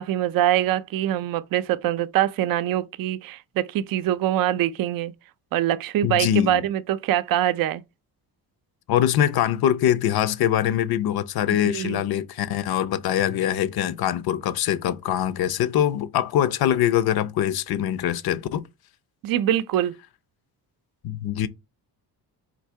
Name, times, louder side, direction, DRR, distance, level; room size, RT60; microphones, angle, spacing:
voice 1, 0.0-5.1 5.5-7.8 11.5-12.0 19.2-19.9, right 12 dB, 60° right, 0.5 m, -24 dB
voice 2, 6.0-6.6 8.9-18.6 21.0-21.5, left 11 dB, 65° left, 0.6 m, -23 dB
3.9 x 2.7 x 4.5 m
cardioid pair, 110°, 40 cm